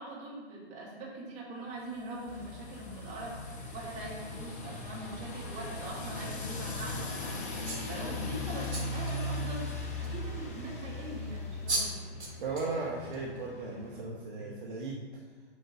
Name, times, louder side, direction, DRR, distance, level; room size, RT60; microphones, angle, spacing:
voice 1, 0.0-11.9 12.2-12.3, right 2 dB, 20° right, -4 dB, 1.9 m, -42 dB
sound 1, 1.8-12.1, left 3 dB, 70° left, 1.3 m, -50 dB
sound 2, 2.3-14.0, left 2 dB, 15° left, 0.4 m, -39 dB
sound 3, 7.6-8.0 8.6-9.1 10.0-10.1 11.3-11.4 11.7-11.9 12.2-12.7 13.1-13.4, right 2 dB, 75° right, 2.1 m, -34 dB
voice 2, 12.4-15.0, right 3 dB, 45° right, -3 dB, 1.0 m, -36 dB
8.2 x 3.8 x 5.2 m, 1.4 s
figure-of-eight pair, 120°, 34 cm